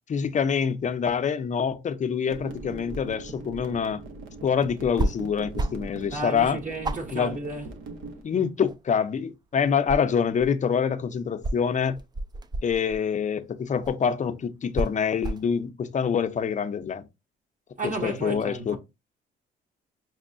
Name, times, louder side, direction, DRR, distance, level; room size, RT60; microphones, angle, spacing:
voice 1, 0.1-4.0 4.4-6.6 7.1-7.4 8.2-12.0 12.6-17.1 17.8-18.8, left 7 dB, 40° left, 0.5 m, -26 dB
sound 1, 2.3-8.2, right 3 dB, 85° right, 0.8 m, -40 dB
sound 2, 5.0-5.2 5.5-5.9 6.3-6.4 6.8-8.2 8.5-9.3 9.7-10.6 11.4-13.0 13.8-14.0 14.7-15.5, right 2 dB, 20° right, 0.3 m, -30 dB
voice 2, 6.1-7.7 17.8-18.8, right 2 dB, 40° right, 1.0 m, -33 dB
6.1 x 2.1 x 2.5 m
cardioid pair, 90°, 20 cm